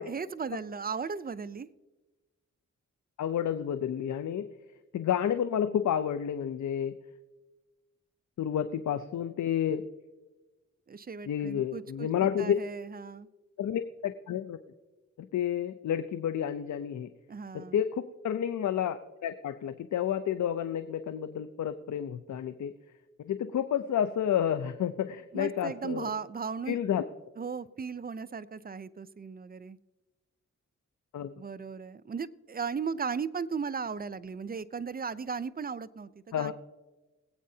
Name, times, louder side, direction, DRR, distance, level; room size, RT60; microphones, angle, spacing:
voice 1, 0.0-1.7 10.9-13.3 17.3-17.8 25.3-26.8 27.4-29.8 31.4-36.5, right 5 dB, 30° right, 15 dB, 0.5 m, -36 dB
voice 2, 3.2-4.5 4.9-7.0 8.4-9.8 11.3-12.6 13.6-14.6 15.2-17.1 17.5-22.7 23.2-26.1 26.7-27.1 31.1-31.3 36.3-36.5, left 9 dB, 75° left, 11 dB, 0.6 m, -30 dB
22.0 x 8.6 x 2.8 m, 1.2 s
cardioid pair, 65°, 29 cm